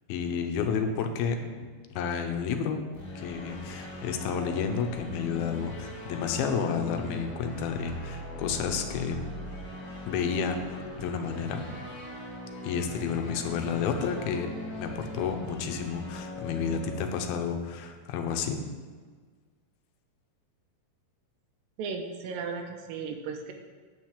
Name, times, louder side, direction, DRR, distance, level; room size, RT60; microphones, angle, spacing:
voice 1, 0.1-1.4 1.9-2.8 3.2-9.2 10.1-11.7 12.6-14.5 14.8-18.6, left 6 dB, 80° left, 5 dB, 2.6 m, -31 dB
sound 1, 2.9-16.9, left 1 dB, 25° left, 2.7 m, -40 dB
voice 2, 21.8-23.5, right 5 dB, 75° right, 5 dB, 2.4 m, -35 dB
9.3 x 4.6 x 7.4 m, 1.5 s
omnidirectional pair, 4.3 m